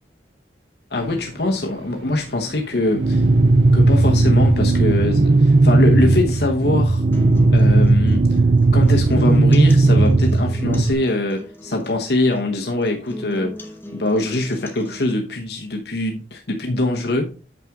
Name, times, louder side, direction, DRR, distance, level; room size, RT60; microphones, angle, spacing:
voice 1, 0.9-3.2 3.7-7.0 7.5-8.4 8.7-17.3, left 2 dB, 60° left, 1.0 m, -23 dB
sound 1, 0.9-6.1, equal, 70° right, 1.5 m, -40 dB
sound 2, 3.0-10.9, right 2 dB, 40° right, 0.5 m, -15 dB
sound 3, 7.1-15.1, equal, 10° left, 1.1 m, -38 dB
8.9 x 5.9 x 3.6 m
head